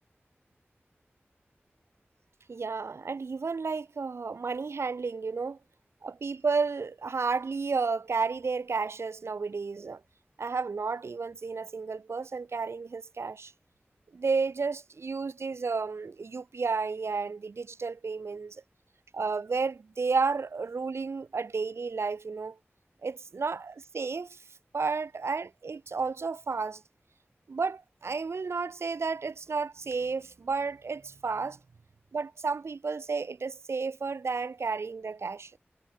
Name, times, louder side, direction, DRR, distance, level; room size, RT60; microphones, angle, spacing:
voice 1, 2.5-5.6 6.0-10.0 10.4-13.5 14.1-18.6 19.1-22.6 23.0-24.4 24.7-26.8 27.5-31.6 32.1-35.6, right 4 dB, 85° right, 0.7 m, -32 dB
wide cardioid pair, 55°, 4 cm